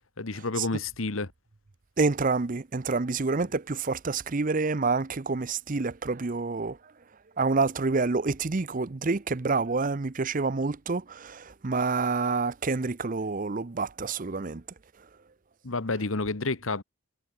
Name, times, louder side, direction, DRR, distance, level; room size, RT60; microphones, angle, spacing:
voice 1, 0.2-1.3 15.6-16.8, left 3 dB, 80° left, 1.5 m, -30 dB
voice 2, 2.0-6.8 7.4-14.6, right 4 dB, 40° right, 0.7 m, -28 dB
head